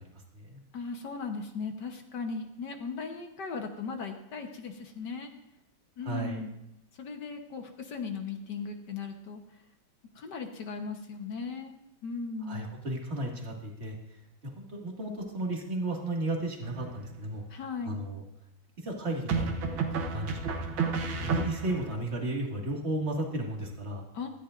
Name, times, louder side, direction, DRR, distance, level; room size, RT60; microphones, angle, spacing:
voice 1, 0.0-0.6 6.0-6.4 12.4-14.0 14.4-17.4 17.8-18.2 18.8-20.7 21.2-24.0, right 1 dB, 35° right, 0 dB, 2.2 m, -34 dB
voice 2, 0.7-5.3 6.0-6.5 7.0-9.4 10.1-11.7 12.0-12.7 17.5-18.0 24.1-24.3, left 5 dB, 60° left, 4 dB, 1.6 m, -37 dB
sound 1, 16.6-17.2 19.3-22.0, right 5 dB, 80° right, 1.8 m, -31 dB
17.0 x 14.0 x 2.5 m, 0.84 s
omnidirectional pair, 2.2 m